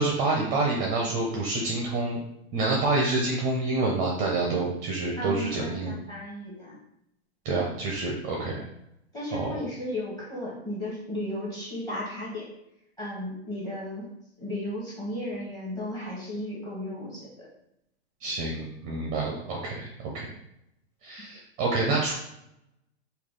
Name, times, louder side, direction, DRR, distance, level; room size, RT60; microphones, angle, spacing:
voice 1, 0.0-2.2 2.5-5.9 7.4-8.6 9.3-9.5 18.2-20.3 21.0-22.1, right 3 dB, 25° right, -2 dB, 0.5 m, -27 dB
voice 2, 5.1-6.8 9.1-12.5 13.0-14.1 14.4-17.5, left 1 dB, 10° left, -6 dB, 1.2 m, -34 dB
3.2 x 2.3 x 3.7 m, 0.80 s
hypercardioid pair, 130°, 33 cm